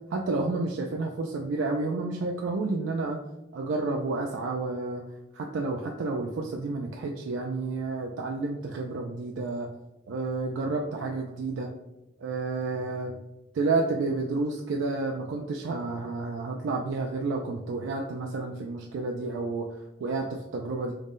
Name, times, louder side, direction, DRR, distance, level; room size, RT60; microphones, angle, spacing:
voice 1, 0.1-3.2 3.5-5.0 5.3-9.7 10.1-11.7 12.2-13.2 13.5-19.7 20.0-20.9, right 3 dB, 85° right, 1 dB, 0.3 m, -30 dB
3.7 x 2.1 x 3.5 m, 0.96 s
head